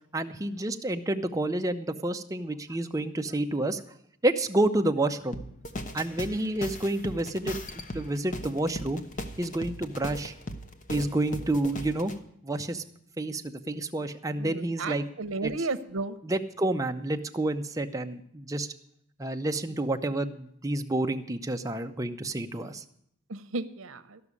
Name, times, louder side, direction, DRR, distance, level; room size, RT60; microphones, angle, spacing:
voice 1, 0.1-3.8 4.2-5.4 5.9-9.0 9.4-10.3 10.9-12.1 12.4-12.8 13.2-15.1 15.4-15.7 16.2-18.7 19.2-22.8, right 2 dB, 15° right, 6 dB, 0.6 m, -29 dB
sound 1, 5.3-12.2, left 1 dB, 40° left, 0.9 m, -38 dB
voice 2, 14.4-16.2 23.3-24.2, right 3 dB, 85° right, 13 dB, 0.8 m, -33 dB
13.5 x 6.1 x 9.6 m, 0.71 s
head